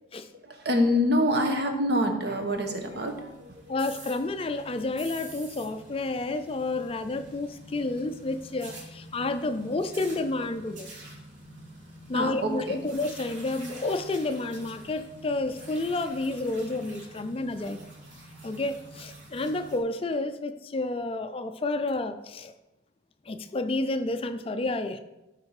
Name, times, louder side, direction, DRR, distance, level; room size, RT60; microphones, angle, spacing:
voice 1, 0.3-3.8 12.1-12.8, left 1 dB, 55° right, 5 dB, 1.2 m, -26 dB
sound 1, 2.4-19.8, right 1 dB, 75° right, 2.4 m, -47 dB
voice 2, 3.7-10.9 12.1-17.8 18.4-22.5 23.3-25.0, left 2 dB, 30° left, 10 dB, 0.4 m, -30 dB
12.5 x 4.5 x 4.8 m, 1.0 s
head